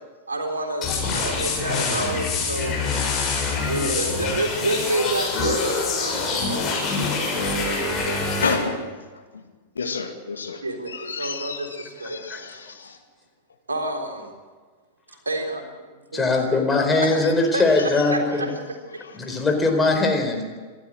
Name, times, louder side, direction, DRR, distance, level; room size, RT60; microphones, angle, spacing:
voice 1, 0.3-2.8 3.6-6.8 7.3-8.6 10.5-12.5 13.7-14.3 15.3-16.6 16.9-17.1 17.5-17.6 18.1-19.0, right 1 dB, 75° right, 3 dB, 3.8 m, -29 dB
sound 1, 0.8-8.6, left 4 dB, 30° left, 7.3 m, -25 dB
voice 2, 8.4-8.9 9.3-9.4 9.8-10.6 10.9-13.0, left 5 dB, 70° left, 5 dB, 2.3 m, -30 dB
voice 3, 16.1-18.5 19.1-20.4, left 3 dB, 10° left, 3 dB, 4.4 m, -21 dB
27.0 x 13.0 x 7.8 m, 1.4 s
figure-of-eight pair, 95°, 0 cm